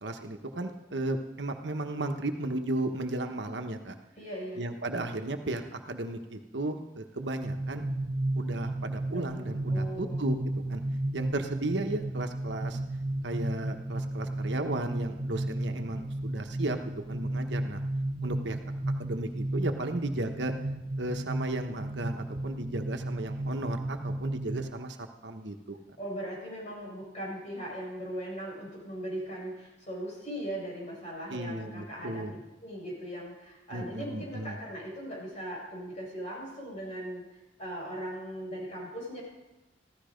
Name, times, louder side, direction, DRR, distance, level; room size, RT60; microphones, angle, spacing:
voice 1, 0.0-4.0 4.6-7.9 8.3-10.4 10.7-10.8 11.1-12.8 13.2-16.8 17.1-17.8 18.2-18.6 19.0-20.5 21.0-25.0 25.2-25.8 31.3-32.3 33.7-34.6, right 2 dB, 80° right, 5 dB, 1.2 m, -34 dB
voice 2, 4.2-4.6 9.1-10.2 26.0-32.2 32.6-37.3 37.6-39.2, right 1 dB, 40° left, -3 dB, 6.5 m, -39 dB
sound 1, 7.4-24.7, right 1 dB, 40° right, 0.6 m, -33 dB
14.5 x 13.0 x 5.2 m, 1.0 s
head